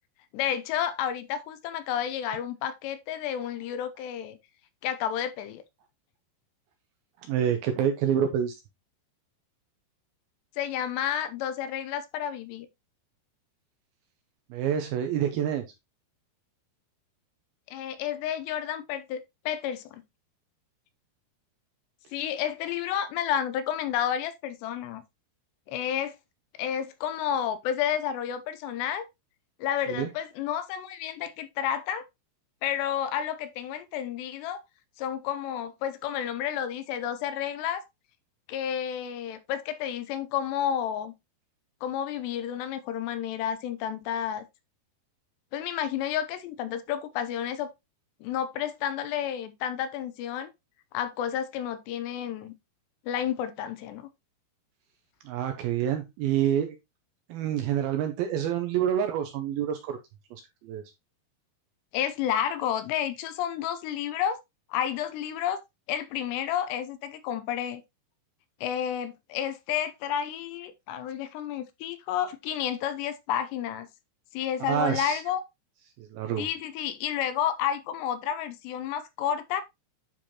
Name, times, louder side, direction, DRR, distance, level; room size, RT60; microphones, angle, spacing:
voice 1, 0.3-4.4 4.8-5.6 10.6-12.7 17.7-20.0 22.1-25.0 25.7-26.1 26.6-29.0 29.6-32.0 32.6-34.6 35.0-37.8 38.5-41.1 41.8-44.5 45.5-47.7 48.2-50.5 50.9-52.5 53.1-54.1 61.9-64.4 64.7-65.6 65.9-67.8 68.6-73.9 74.3-75.4 76.4-79.6, left 9 dB, 85° left, 2.8 m, -31 dB
voice 2, 7.3-8.6 14.5-15.7 29.9-30.1 55.3-56.8 57.3-60.0 60.3-60.8 74.6-75.2 76.0-76.5, right 9 dB, 80° right, 2.2 m, -27 dB
9.9 x 4.5 x 2.9 m
omnidirectional pair, 5.0 m